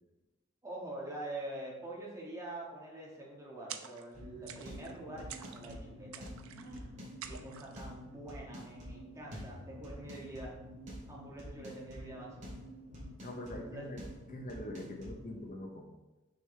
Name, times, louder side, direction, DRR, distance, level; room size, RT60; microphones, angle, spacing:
voice 1, 0.6-10.6 11.1-12.5 13.7-13.9, right 1 dB, 15° right, -4 dB, 1.5 m, -45 dB
sound 1, 3.7-4.2 4.5-5.0 5.3-5.8 6.1-6.8 7.2-7.8, right 9 dB, 75° right, 0.5 m, -47 dB
sound 2, 4.1-15.5, equal, 35° right, 2.4 m, -48 dB
voice 2, 13.2-14.0 14.3-16.0, left 1 dB, 40° left, 2 dB, 0.7 m, -43 dB
6.4 x 6.2 x 3.3 m, 1.1 s
head